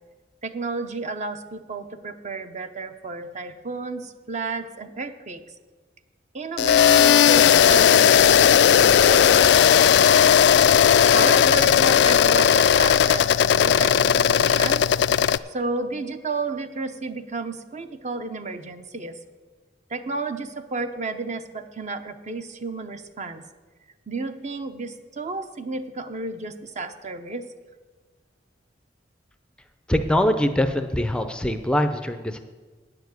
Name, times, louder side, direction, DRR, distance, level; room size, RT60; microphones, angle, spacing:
voice 1, 0.4-5.4 6.3-10.4 10.8-14.8 15.5-19.2 19.9-23.4 24.1-27.5, right 3 dB, 40° right, 8 dB, 0.7 m, -32 dB
sound 1, 6.6-15.4, left 8 dB, 70° left, 0.3 m, -16 dB
voice 2, 29.9-32.4, left 1 dB, 5° left, 8 dB, 0.5 m, -23 dB
9.6 x 7.1 x 7.9 m, 1.4 s
head